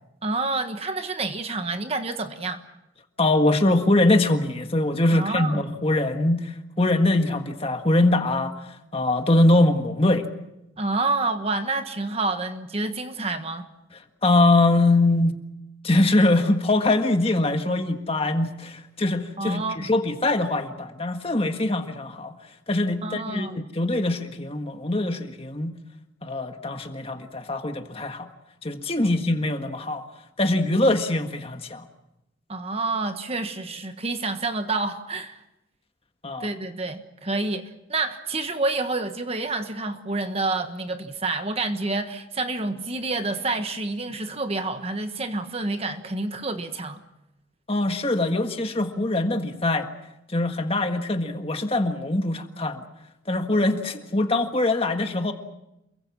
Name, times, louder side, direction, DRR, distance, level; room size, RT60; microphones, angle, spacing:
voice 1, 0.2-2.6 5.1-5.6 10.8-13.7 19.4-19.9 23.0-23.6 32.5-35.4 36.4-47.0 53.7-53.8, right 3 dB, 30° right, 8 dB, 1.4 m, -28 dB
voice 2, 3.2-8.5 8.9-10.3 14.2-15.4 15.8-22.3 22.7-25.7 26.2-28.3 28.6-30.0 30.4-31.8 36.2-36.5 47.7-49.9 50.3-52.9 53.3-55.3, left 2 dB, 30° left, 6 dB, 1.7 m, -23 dB
28.5 x 23.0 x 6.2 m, 0.89 s
head